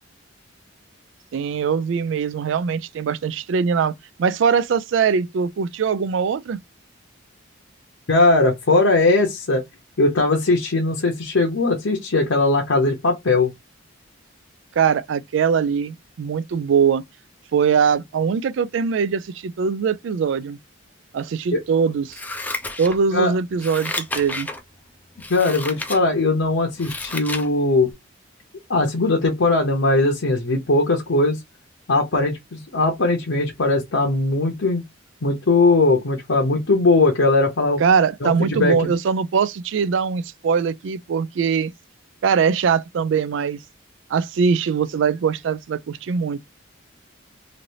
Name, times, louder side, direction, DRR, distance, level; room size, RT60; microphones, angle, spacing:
voice 1, 1.3-3.9 4.2-6.6 14.8-17.0 17.5-20.6 21.1-22.2 22.8-24.5 37.8-41.7 42.2-43.6 44.1-46.4, right 6 dB, 65° right, 0.3 m, -21 dB
voice 2, 8.1-9.6 10.0-13.5 21.5-21.6 23.1-23.3 25.3-27.9 28.7-31.4 31.9-34.8 35.2-37.8 38.2-38.7, left 2 dB, 70° left, 0.8 m, -19 dB
Scissors, 22.1-23.2 23.6-24.6 25.2-26.0 26.4-27.5 27.9-28.0, left 2 dB, 10° left, 0.4 m, -31 dB
3.2 x 2.5 x 2.7 m
head